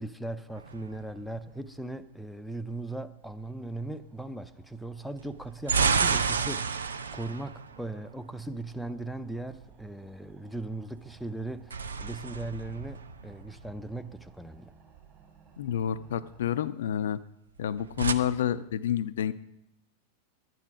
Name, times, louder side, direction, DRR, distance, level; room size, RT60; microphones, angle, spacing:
voice 1, 0.0-14.7, right 2 dB, ahead, 0.4 m, -38 dB
sound 1, 0.6-1.6 5.2-8.5 11.3-13.8 17.6-18.1, right 5 dB, 70° right, 0.5 m, -31 dB
sound 2, 3.2-16.6, right 7 dB, 30° right, 3.2 m, -58 dB
voice 2, 15.6-17.2 17.6-19.3, left 10 dB, 60° left, 0.4 m, -29 dB
11.5 x 9.3 x 4.9 m
figure-of-eight pair, 90°, 0 cm